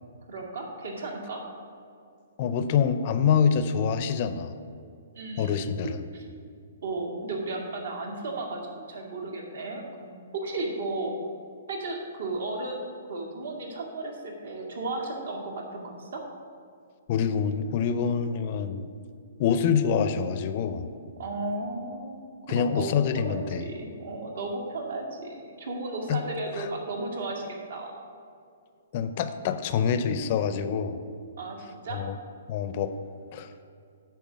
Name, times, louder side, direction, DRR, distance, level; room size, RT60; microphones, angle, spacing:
voice 1, 0.3-1.4 5.1-6.2 6.8-11.1 11.7-12.8 13.1-16.2 21.2-23.0 23.3-28.0 31.4-32.0, right 2 dB, 70° right, 1 dB, 1.9 m, -34 dB
voice 2, 2.4-4.5 5.4-6.0 17.1-18.9 19.4-20.9 22.5-23.6 26.1-26.2 26.6-26.7 28.9-31.0 31.9-32.1 32.5-32.9 33.3-33.5, left 7 dB, 35° left, 11 dB, 0.4 m, -26 dB
9.1 x 4.5 x 6.2 m, 2.4 s
hypercardioid pair, 160°, 0 cm